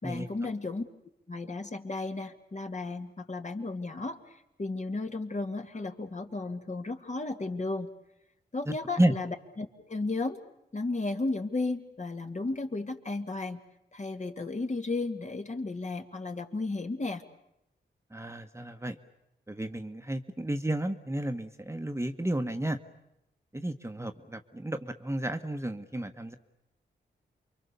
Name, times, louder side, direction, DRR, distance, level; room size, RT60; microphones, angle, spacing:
voice 1, 0.0-0.8 1.3-7.9 8.5-10.4 10.7-13.6 13.9-17.2, left 3 dB, 40° left, 5 dB, 2.3 m, -34 dB
voice 2, 8.7-9.1 18.1-19.0 19.5-22.8 23.5-26.3, right 1 dB, 15° right, 7 dB, 1.4 m, -32 dB
28.5 x 23.5 x 7.0 m, 0.85 s
cardioid pair, 60°, 19 cm